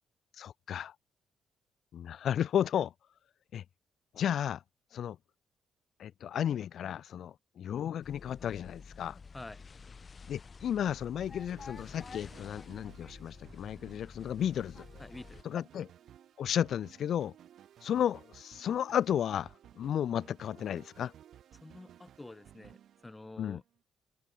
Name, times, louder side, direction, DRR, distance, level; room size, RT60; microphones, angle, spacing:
voice 1, 0.4-0.9 1.9-2.9 3.5-3.6 4.1-4.6 4.9-5.2 6.0-9.2 10.3-14.8 15.4-15.9 16.4-17.3 17.8-19.5 19.8-21.1 23.4-23.6, left 9 dB, 65° left, 0.7 m, -33 dB
sound 1, 8.0-15.4, left 5 dB, 35° left, 1.5 m, -50 dB
voice 2, 9.3-9.6 15.0-15.4 21.6-22.8 23.0-23.6, left 2 dB, 15° left, 0.4 m, -48 dB
sound 2, 10.8-23.8, right 10 dB, 70° right, 2.4 m, -57 dB
cardioid pair, 90°, 0 cm